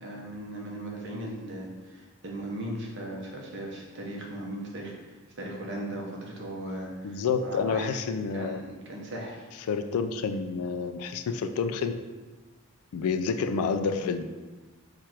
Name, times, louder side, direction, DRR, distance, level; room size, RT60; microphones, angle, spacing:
voice 1, 0.0-4.9 5.4-7.9 8.3-9.4, right 1 dB, 55° right, -2 dB, 0.8 m, -38 dB
voice 2, 7.0-8.6 9.7-11.9 12.9-14.3, left 5 dB, 90° left, 8 dB, 0.3 m, -29 dB
4.6 x 2.5 x 4.4 m, 1.3 s
head